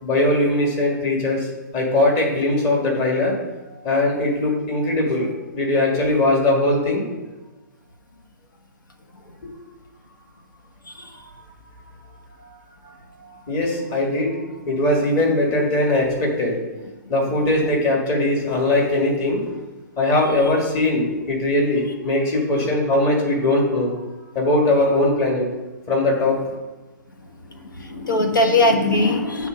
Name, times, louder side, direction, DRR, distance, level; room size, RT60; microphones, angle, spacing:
voice 1, 0.0-1.5 1.7-3.4 3.8-7.0 12.4-12.5 13.2-14.4 14.7-16.6 17.1-19.4 20.0-23.9 24.3-25.5 25.9-26.4, left 1 dB, 30° left, -2 dB, 2.1 m, -20 dB
voice 2, 17.4-17.8 22.6-22.7 27.5-29.5, left 2 dB, 90° left, 4 dB, 1.2 m, -21 dB
8.6 x 3.6 x 5.2 m, 1.1 s
hypercardioid pair, 135°, 10 cm